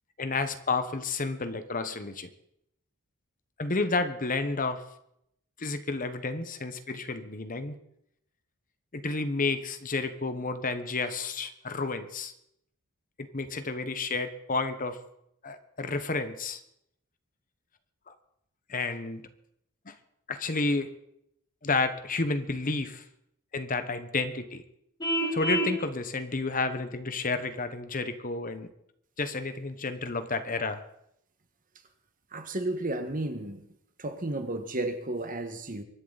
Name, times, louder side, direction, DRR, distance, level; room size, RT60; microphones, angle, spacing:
voice 1, 0.2-2.3 3.6-4.8 5.6-7.8 8.9-12.3 13.2-15.0 15.4-16.6 18.1-18.2 18.7-19.2 19.9-20.0 20.3-20.9 21.6-23.0 23.5-24.6 25.3-28.7 29.2-30.8, left 3 dB, 40° left, 9 dB, 1.1 m, -31 dB
Vehicle horn car horn honking, 25.0-25.8, right 1 dB, 20° left, 2.1 m, -28 dB
voice 2, 32.3-33.7 34.0-35.8, right 2 dB, 40° right, 7 dB, 1.6 m, -33 dB
24.0 x 11.0 x 4.1 m, 0.75 s
head